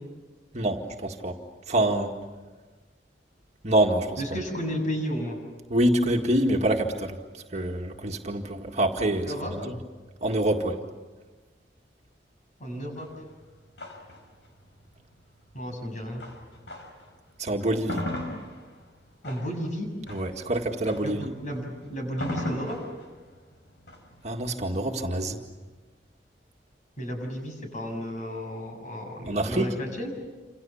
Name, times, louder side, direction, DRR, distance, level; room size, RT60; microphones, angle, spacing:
voice 1, 0.5-1.4 1.7-2.2 3.6-4.2 5.7-7.2 7.5-9.7 10.2-10.8 17.4-18.1 20.1-21.3 24.2-25.4 29.3-29.7, right 1 dB, 40° right, 2 dB, 2.0 m, -26 dB
voice 2, 4.2-5.4 9.3-9.5 12.6-13.1 15.5-16.2 19.2-19.9 21.0-22.8 27.0-30.1, equal, 45° left, 3 dB, 7.2 m, -33 dB
sound 1, 13.0-17.1 17.5-25.4, left 1 dB, 85° left, 5.1 m, -39 dB
28.0 x 27.5 x 7.2 m, 1.3 s
head